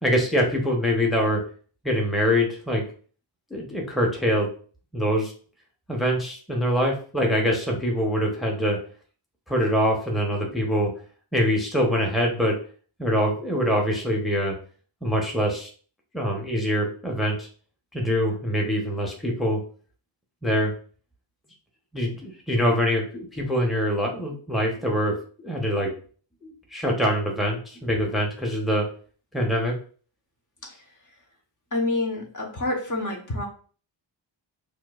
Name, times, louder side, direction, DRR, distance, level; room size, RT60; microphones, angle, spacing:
voice 1, 0.0-1.4 1.8-2.8 3.5-4.5 4.9-5.3 5.9-8.8 9.5-10.9 11.3-12.6 13.0-14.5 15.0-15.7 16.1-17.5 17.9-19.6 20.4-20.7 21.9-25.2 25.4-25.9 26.4-28.9 29.3-29.7, equal, ahead, -1 dB, 0.8 m, -24 dB
voice 2, 31.7-33.5, left 2 dB, 40° left, 0 dB, 1.0 m, -28 dB
4.4 x 2.6 x 2.4 m, 0.42 s
wide cardioid pair, 80°, 47 cm